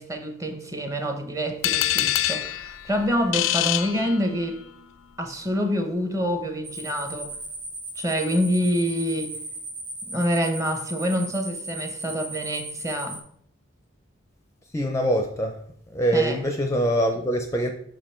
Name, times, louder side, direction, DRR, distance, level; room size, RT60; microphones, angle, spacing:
voice 1, 0.0-4.6 5.2-7.3 8.0-9.4 10.1-13.2 16.1-16.4, equal, 15° right, 0.8 m, -26 dB
sound 1, 1.6-4.6, left 13 dB, 75° left, 0.4 m, -26 dB
sound 2, 6.6-13.2, right 2 dB, 85° right, 2.4 m, -36 dB
voice 2, 14.7-15.6 15.9-17.7, right 1 dB, 15° left, 0.5 m, -23 dB
5.8 x 5.1 x 4.3 m
head